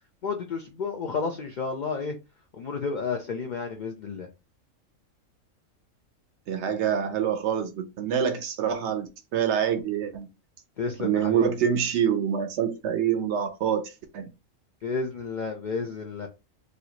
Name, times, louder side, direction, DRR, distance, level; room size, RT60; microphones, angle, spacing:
voice 1, 0.2-2.2 2.5-4.3 10.8-11.6 14.8-16.3, left 4 dB, 75° left, 0.4 m, -31 dB
voice 2, 6.5-10.3 11.0-13.8 14.1-14.3, right 8 dB, 65° right, 0.8 m, -26 dB
3.1 x 2.5 x 2.8 m
omnidirectional pair, 1.4 m